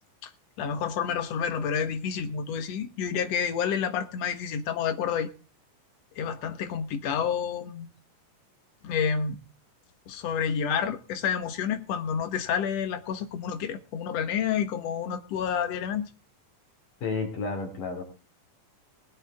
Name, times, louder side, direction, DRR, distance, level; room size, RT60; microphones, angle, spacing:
voice 1, 0.6-5.3 6.2-7.9 8.8-9.4 10.1-16.1, left 7 dB, 60° left, 2.4 m, -29 dB
voice 2, 17.0-18.0, left 4 dB, 80° left, 4.4 m, -31 dB
20.5 x 8.7 x 3.6 m
omnidirectional pair, 3.7 m